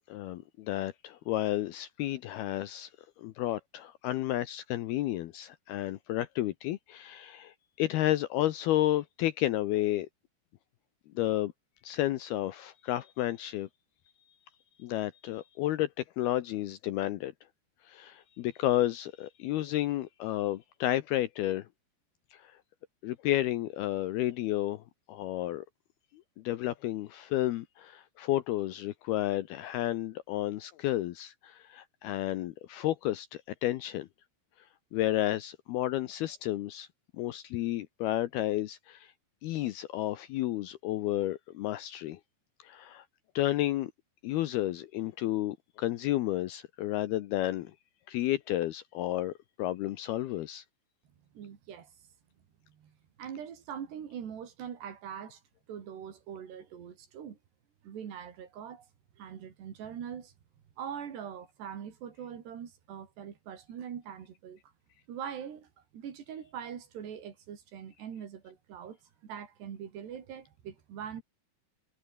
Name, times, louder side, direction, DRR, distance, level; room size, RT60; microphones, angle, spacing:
voice 1, 0.1-2.9 3.2-10.1 11.2-11.5 11.8-13.7 14.8-15.9 16.2-17.3 17.9-21.7 22.3-22.6 23.0-25.6 26.4-34.1 34.9-36.9 37.2-39.1 39.4-42.2 42.6-43.0 43.4-43.9 44.2-47.7 48.1-50.6, left 14 dB, 75° left, 2.4 m, -31 dB
voice 2, 51.3-51.9 52.8-52.9 53.2-55.4 55.7-57.4 57.8-58.9 59.2-60.3 60.8-64.6 65.1-69.0 69.2-71.2, right 8 dB, 65° right, 5.0 m, -42 dB
omnidirectional pair, 5.3 m